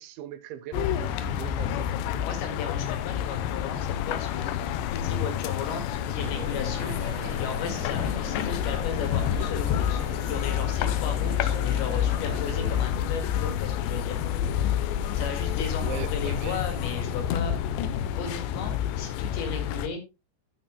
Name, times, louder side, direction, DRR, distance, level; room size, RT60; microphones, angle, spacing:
voice 1, 0.0-2.0 15.8-16.9, right 10 dB, 85° right, 3.4 m, -40 dB
sound 1, 0.7-19.9, left 10 dB, 75° left, 2.9 m, -28 dB
voice 2, 2.2-7.0 7.4-10.0 10.3-14.2 15.1-17.6 18.1-20.0, left 5 dB, 60° left, 3.8 m, -36 dB
sound 2, 6.2-12.8, right 1 dB, 25° right, 2.0 m, -40 dB
12.0 x 10.0 x 2.2 m
omnidirectional pair, 5.2 m